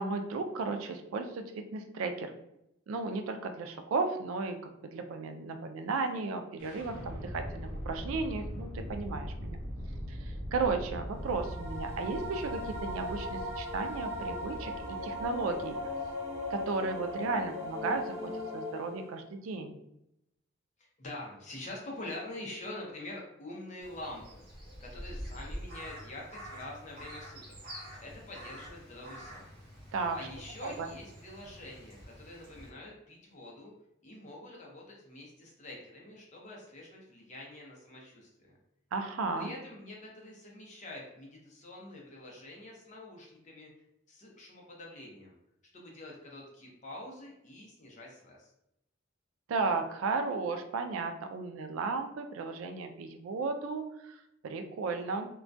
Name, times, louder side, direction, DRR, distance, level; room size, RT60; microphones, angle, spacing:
voice 1, 0.0-1.4 1.7-2.3 2.9-9.6 10.1-14.7 15.0-15.7 16.5-19.8 29.9-30.2 30.6-30.9 38.9-39.5 49.5-55.3, right 4 dB, 90° right, 7 dB, 0.3 m, -34 dB
sound 1, 6.6-18.5, equal, 65° left, 1.1 m, -42 dB
sound 2, 11.1-19.3, left 1 dB, 10° right, 0.7 m, -38 dB
voice 2, 20.8-24.4 24.8-27.6 28.0-29.5 30.1-33.7 34.0-38.6 39.4-43.7 44.1-45.4 45.7-48.5, left 1 dB, 35° left, -2 dB, 0.6 m, -46 dB
Crow, 23.8-32.7, equal, 50° right, 0.8 m, -46 dB
2.2 x 2.1 x 2.5 m, 0.81 s
head